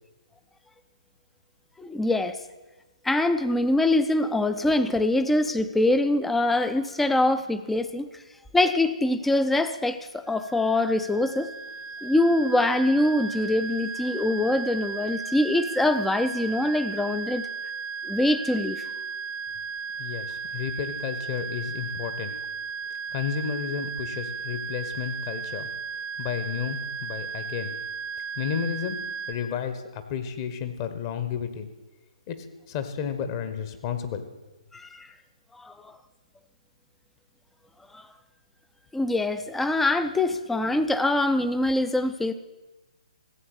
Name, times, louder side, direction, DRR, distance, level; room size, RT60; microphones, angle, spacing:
voice 1, 1.8-2.4 3.0-8.1 8.5-11.5 12.0-17.4 18.0-18.9 34.7-35.1 35.5-36.0 37.9-38.0 38.9-42.3, left 2 dB, 5° left, 11 dB, 0.6 m, -24 dB
sound 1, 10.3-29.3, right 6 dB, 50° left, 1.8 m, -35 dB
voice 2, 20.0-22.4 23.1-25.7 26.2-27.7 28.4-29.0 29.3-31.7 32.3-32.4 32.7-34.2, left 7 dB, 30° left, 9 dB, 1.3 m, -32 dB
14.5 x 7.9 x 8.1 m, 1.1 s
figure-of-eight pair, 130°, 4 cm